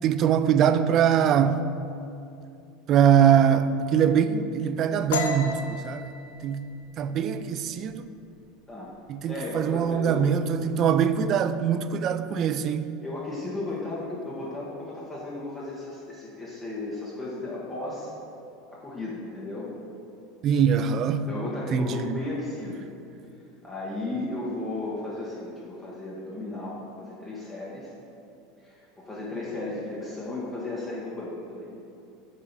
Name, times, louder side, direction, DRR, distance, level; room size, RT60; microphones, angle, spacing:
voice 1, 0.0-1.7 2.9-6.7 7.0-8.1 9.1-12.9 20.4-21.3 21.7-22.2, right 8 dB, 45° right, 0.3 m, -23 dB
sound 1, 5.1-8.5 8.9-9.2 9.6-10.1 10.4-11.1, left 3 dB, 85° left, 0.5 m, -33 dB
voice 2, 9.3-10.3 13.0-18.1 18.7-19.7 21.3-22.9 23.6-27.9 28.6-31.7, left 2 dB, 15° left, 1.3 m, -35 dB
8.0 x 2.8 x 5.3 m
supercardioid pair, 115°, 0 cm